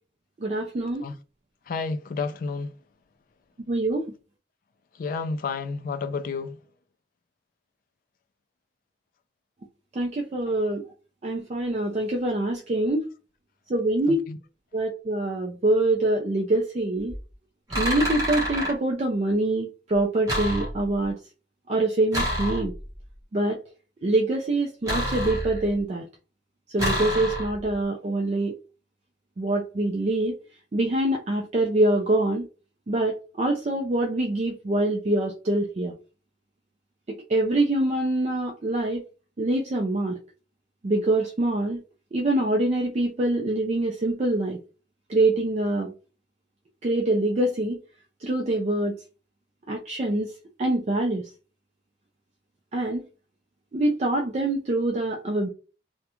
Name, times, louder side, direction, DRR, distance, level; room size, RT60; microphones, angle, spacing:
voice 1, 0.4-1.1 3.7-4.0 10.0-10.8 11.2-13.0 13.7-14.2 14.7-17.1 17.8-21.1 21.7-22.7 23.3-23.6 24.0-26.0 26.7-28.5 29.4-30.3 30.7-32.5 32.9-35.9 37.3-39.0 39.4-40.2 40.8-41.8 42.1-44.6 45.1-45.9 46.8-47.8 48.2-49.0 49.7-50.3 50.6-51.3 52.7-53.0 53.7-55.5, right 2 dB, 35° right, 0.4 m, -24 dB
voice 2, 1.7-2.7 5.0-6.6 14.1-14.4, left 4 dB, 50° left, 0.3 m, -30 dB
sound 1, 17.1-17.2 17.7-18.8 20.3-21.1 22.1-23.0 24.9-25.8 26.8-27.7, equal, 20° right, 1.0 m, -28 dB
2.4 x 2.1 x 2.9 m
head